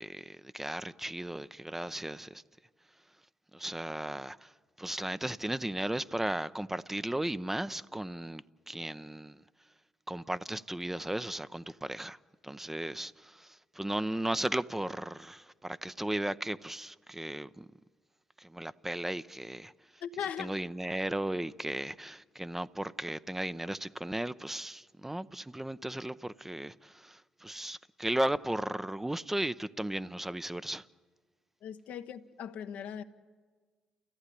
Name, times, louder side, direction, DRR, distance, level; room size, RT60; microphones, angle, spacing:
voice 1, 0.0-2.4 3.5-4.5 4.8-9.4 10.1-12.2 12.4-17.7 18.4-20.0 20.4-30.9, right 1 dB, 10° right, 0.7 m, -36 dB
voice 2, 20.0-20.6 31.6-33.0, left 8 dB, 70° left, 1.1 m, -39 dB
29.5 x 14.5 x 9.9 m
hypercardioid pair, 55°, 3 cm